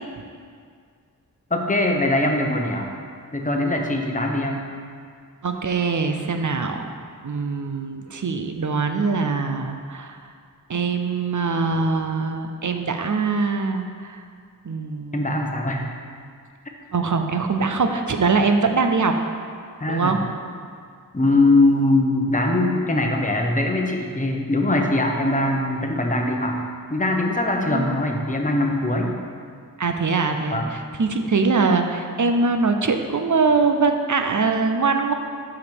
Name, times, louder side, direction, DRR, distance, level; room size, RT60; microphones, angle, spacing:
voice 1, 1.5-2.9 3.3-4.6 15.1-15.9 19.8-20.2 21.1-26.6 26.9-29.1 30.5-30.7, left 2 dB, 20° left, 1 dB, 0.9 m, -21 dB
voice 2, 5.4-6.9 7.2-10.2 10.7-14.2 14.6-15.5 16.9-19.1 19.9-20.2 27.7-28.0 29.8-35.1, right 4 dB, 60° right, 5 dB, 0.6 m, -22 dB
5.8 x 5.1 x 6.1 m, 2.1 s
wide cardioid pair, 50°, 35 cm